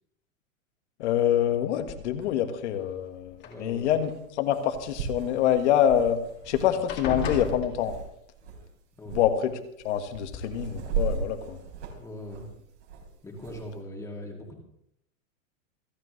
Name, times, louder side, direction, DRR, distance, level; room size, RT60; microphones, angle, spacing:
voice 1, 1.0-6.2 6.5-7.9 9.1-9.5 9.8-11.6, left 10 dB, 55° left, 8 dB, 1.7 m, -26 dB
sound 1, 1.9-2.4 3.3-4.1 5.9-6.0 6.3-6.5 6.9-8.3 9.5-9.6 10.1-10.5, left 4 dB, 25° left, 2.1 m, -36 dB
sound 2, 2.2-2.3 4.1-4.2 4.5-8.1 8.4-8.7 9.0-9.3 9.8-13.7, right 5 dB, 55° right, 4.4 m, -36 dB
voice 2, 3.4-3.9 9.0-9.2 12.0-12.5 13.2-14.6, left 1 dB, 5° left, 0 dB, 2.4 m, -40 dB
27.5 x 9.1 x 3.2 m, 0.78 s
supercardioid pair, 155°, 41 cm